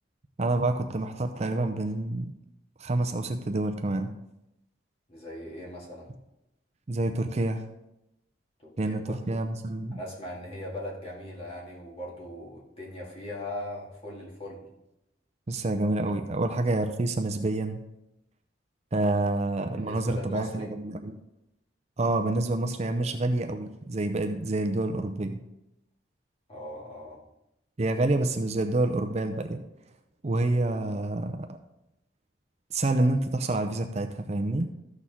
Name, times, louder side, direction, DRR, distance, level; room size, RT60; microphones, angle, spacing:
voice 1, 0.4-2.3 2.8-4.1 6.9-7.7 8.8-10.0 15.5-17.8 18.9-21.2 22.0-25.4 27.8-29.6 30.2-31.5 32.7-34.7, right 2 dB, 35° right, 5 dB, 0.6 m, -28 dB
voice 2, 5.1-6.1 8.6-9.4 9.9-14.7 19.7-20.7 26.5-27.2, left 1 dB, 30° left, -4 dB, 2.4 m, -39 dB
13.5 x 6.5 x 3.6 m, 0.89 s
head